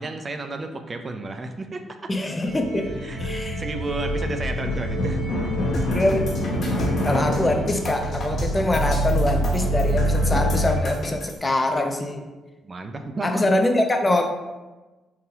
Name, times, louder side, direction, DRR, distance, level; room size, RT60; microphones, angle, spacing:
voice 1, 0.0-2.1 3.0-3.2 3.6-5.2 9.4-9.6 12.6-13.4, right 3 dB, 35° right, 6 dB, 0.4 m, -32 dB
voice 2, 2.1-2.9 3.2-3.6 5.9-6.3 7.0-12.2 13.2-14.3, left 1 dB, 20° left, 4 dB, 0.5 m, -23 dB
sound 1, 2.4-10.8, equal, 90° left, 0.8 m, -25 dB
sound 2, 5.7-11.3, equal, 60° left, 1.3 m, -32 dB
3.8 x 2.7 x 2.9 m, 1.1 s
cardioid pair, 90°, 0 cm